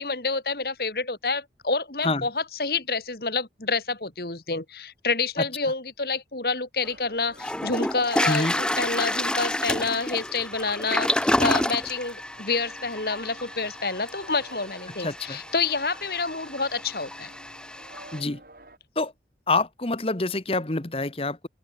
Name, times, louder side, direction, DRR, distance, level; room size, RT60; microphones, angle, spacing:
voice 1, 0.0-17.3, left 4 dB, 55° left, 2.6 m, -28 dB
sound 1, 6.8-18.8, right 2 dB, 55° right, 7.0 m, -51 dB
Toilet flush, 6.9-7.0 7.4-18.2, left 1 dB, 5° left, 0.5 m, -29 dB
voice 2, 15.0-15.4 18.1-18.4 19.0-19.1 19.5-21.5, left 2 dB, 35° left, 1.2 m, -26 dB
open air
head